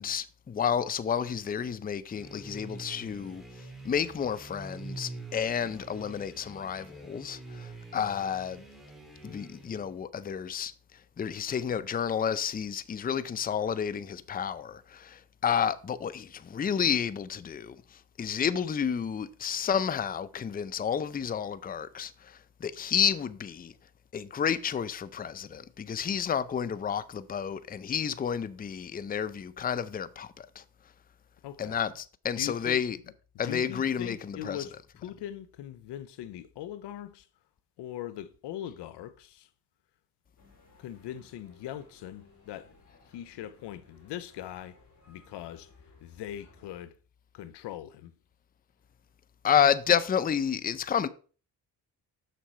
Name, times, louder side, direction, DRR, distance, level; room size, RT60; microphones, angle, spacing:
voice 1, 0.0-8.6 9.2-10.7 11.2-23.7 24.1-30.6 31.6-33.0 33.4-34.6 49.4-51.1, left 8 dB, 20° left, 0.5 m, -30 dB
sound 1, 2.1-9.9, right 2 dB, ahead, 2.1 m, -46 dB
voice 2, 31.4-31.8 32.4-32.8 33.4-37.3 37.8-39.5 40.8-42.7 43.1-44.8 45.1-45.7 46.0-46.9 47.3-48.1, left 11 dB, 85° left, 0.7 m, -41 dB
sound 2, 40.4-46.7, left 3 dB, 45° left, 3.4 m, -59 dB
6.7 x 6.2 x 4.3 m
cardioid pair, 100°, 40 cm